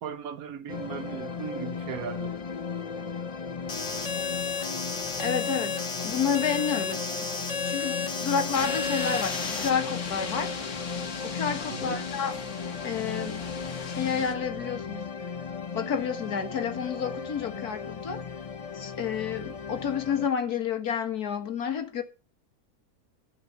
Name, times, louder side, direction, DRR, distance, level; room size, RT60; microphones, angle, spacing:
voice 1, 0.0-2.3 11.7-12.0 13.2-13.3, right 8 dB, 75° right, 1.2 m, -37 dB
sound 1, 0.7-20.3, left 5 dB, 35° left, 0.6 m, -36 dB
sound 2, 3.7-9.7, left 5 dB, 50° left, 2.1 m, -32 dB
voice 2, 5.2-7.3 7.7-10.5 11.2-12.4 12.8-13.5 13.9-15.0 15.7-18.2 18.7-22.0, left 7 dB, 90° left, 2.1 m, -30 dB
sound 3, 8.5-14.3, left 5 dB, 75° left, 2.0 m, -38 dB
14.0 x 5.0 x 6.7 m
omnidirectional pair, 1.6 m